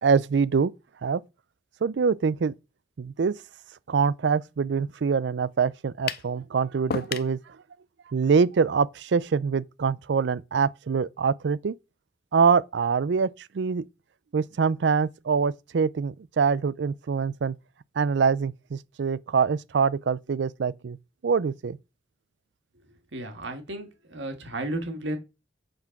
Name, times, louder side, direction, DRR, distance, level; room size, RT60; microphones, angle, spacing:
voice 1, 0.0-0.7 1.0-1.2 1.8-2.5 3.0-3.4 3.9-7.4 8.1-11.7 12.3-13.8 14.3-17.6 18.0-21.0 21.2-21.8, right 5 dB, 70° right, 0.4 m, -24 dB
sound 1, 6.1-6.3 6.9-7.4, left 6 dB, 55° left, 0.5 m, -31 dB
voice 2, 23.1-25.2, right 1 dB, 85° right, 1.7 m, -33 dB
7.8 x 3.7 x 5.8 m
head